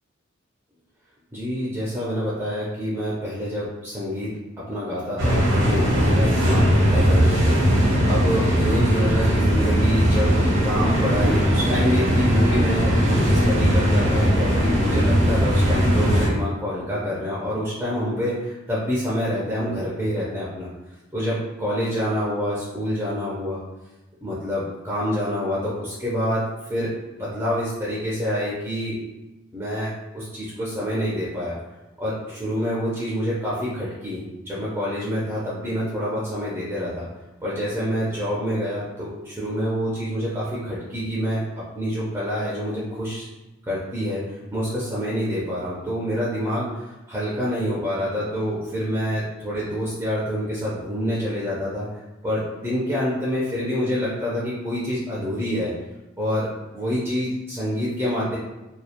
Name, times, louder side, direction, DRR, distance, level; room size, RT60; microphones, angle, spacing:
voice 1, 1.3-20.7 21.1-23.6 24.2-29.0 29.5-31.6 32.0-37.1 37.4-41.4 41.8-43.3 43.7-55.7 56.2-58.4, equal, 10° right, -8 dB, 0.4 m, -27 dB
sound 1, 5.2-16.3, equal, 75° right, 0.8 m, -19 dB
2.2 x 2.1 x 2.7 m, 1.0 s
head